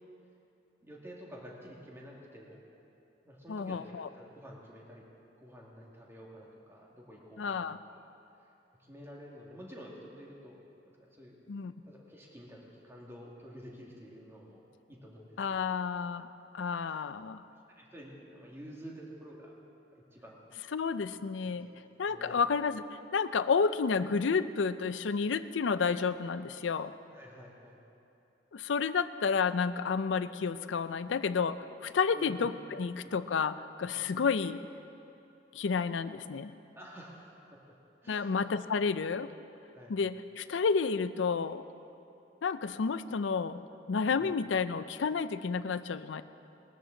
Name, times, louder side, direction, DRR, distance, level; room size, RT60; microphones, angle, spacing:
voice 1, 0.8-2.6 3.3-5.0 5.4-7.7 8.8-10.6 11.0-11.3 11.8-15.6 16.8-16.9 17.8-19.5 19.9-20.5 21.4-21.5 22.0-22.4 27.1-27.8 32.1-32.4 34.0-34.1 36.7-37.6 38.0-38.3 39.7-40.0 44.2-44.3, equal, 15° right, -3 dB, 2.0 m, -50 dB
voice 2, 3.5-4.1 7.4-7.8 11.5-11.7 15.4-16.3 16.5-17.4 20.7-21.7 22.0-27.0 28.5-34.6 35.5-36.5 38.1-39.3 39.9-41.6 42.4-43.6 43.9-46.2, left 5 dB, 80° left, 13 dB, 0.5 m, -31 dB
20.5 x 13.5 x 3.9 m, 2.8 s
head